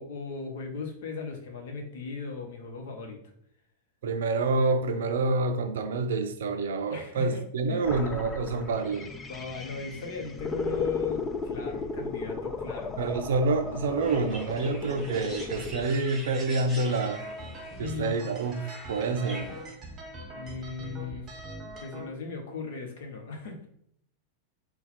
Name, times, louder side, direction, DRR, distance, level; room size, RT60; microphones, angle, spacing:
voice 1, 0.0-3.2 6.9-7.4 7.7-7.9 9.3-13.0 17.8-18.2 20.3-21.2 21.8-23.7, left 4 dB, 55° left, 0.9 m, -37 dB
voice 2, 4.0-9.1 13.0-17.2 17.8-19.5, right 3 dB, 60° right, 0.5 m, -27 dB
sound 1, 7.8-15.9, left 4 dB, 20° left, 0.4 m, -35 dB
sound 2, 14.0-19.7, right 1 dB, 10° right, 1.4 m, -45 dB
sound 3, 16.9-22.0, right 1 dB, 25° right, 1.0 m, -42 dB
4.0 x 2.3 x 4.1 m
figure-of-eight pair, 90°, 0 cm